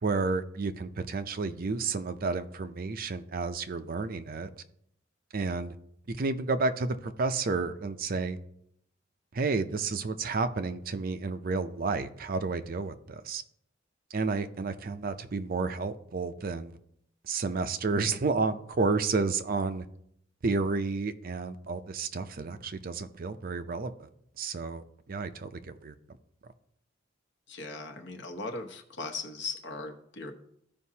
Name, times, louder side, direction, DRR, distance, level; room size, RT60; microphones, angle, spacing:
voice 1, 0.0-4.5 5.3-5.8 6.1-8.4 9.3-13.4 14.1-16.7 17.2-19.9 20.4-24.1 24.4-25.9, right 4 dB, 45° right, 0.5 m, -31 dB
voice 2, 27.5-30.3, left 3 dB, 60° left, 1.1 m, -38 dB
14.5 x 5.1 x 2.8 m
head